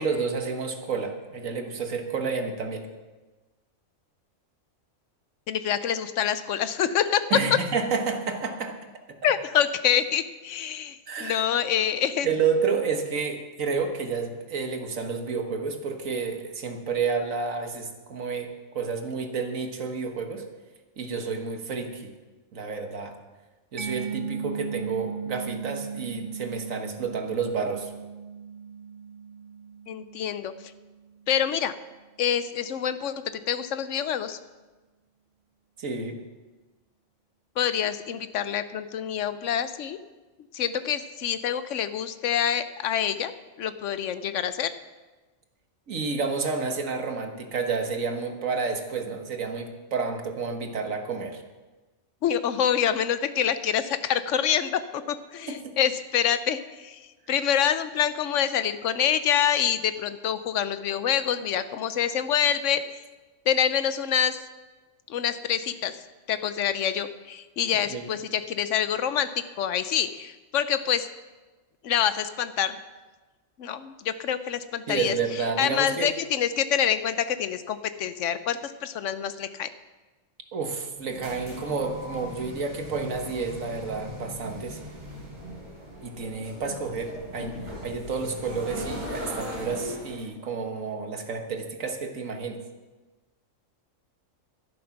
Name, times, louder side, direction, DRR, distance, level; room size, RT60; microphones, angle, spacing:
voice 1, 0.0-2.9 7.3-8.8 11.1-11.4 12.2-20.4 21.0-22.1 22.5-23.1 23.7-27.9 35.8-36.2 45.9-51.4 55.5-55.8 67.9-68.0 74.9-76.1 80.5-84.8 86.0-92.6, right 5 dB, 90° right, 5 dB, 1.7 m, -30 dB
voice 2, 5.5-7.2 9.2-12.3 29.9-30.5 31.3-31.7 32.2-33.1 33.5-34.4 37.6-40.0 40.5-43.3 43.6-44.7 52.2-55.0 55.3-57.0 57.3-62.8 63.5-64.4 65.1-65.9 66.3-69.3 69.6-71.1 71.8-72.8 73.6-75.1 75.6-79.7, left 9 dB, 70° left, 12 dB, 1.0 m, -26 dB
Mallet percussion, 23.8-31.2, right 7 dB, 65° right, 1.3 m, -37 dB
sound 1, 80.9-90.2, left 1 dB, 20° right, 4.7 m, -39 dB
12.0 x 11.0 x 5.9 m, 1.2 s
omnidirectional pair, 1.3 m